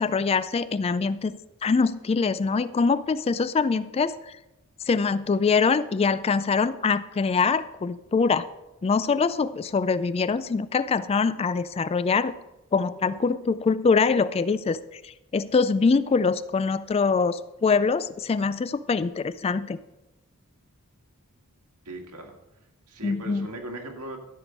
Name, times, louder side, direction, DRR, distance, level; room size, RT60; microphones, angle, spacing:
voice 1, 0.0-4.1 4.9-8.5 8.8-12.3 12.7-19.8 23.0-23.5, left 4 dB, 25° left, 15 dB, 0.3 m, -24 dB
voice 2, 21.9-22.4 22.9-24.2, right 1 dB, 85° right, 2 dB, 1.9 m, -38 dB
13.0 x 5.2 x 6.3 m, 0.97 s
head